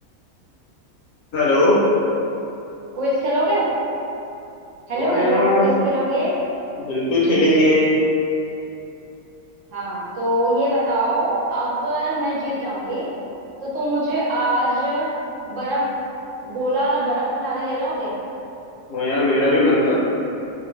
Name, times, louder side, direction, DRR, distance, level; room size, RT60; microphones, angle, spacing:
voice 1, 1.3-1.7 4.9-5.7 6.9-7.9 18.9-20.0, left 1 dB, 70° left, -7 dB, 1.0 m, -18 dB
voice 2, 2.9-3.7 4.9-6.3 9.7-13.1 13.6-15.1 15.5-15.9 16.4-18.1, right 1 dB, 65° right, -7 dB, 0.9 m, -22 dB
2.6 x 2.1 x 3.0 m, 2.8 s
omnidirectional pair, 1.5 m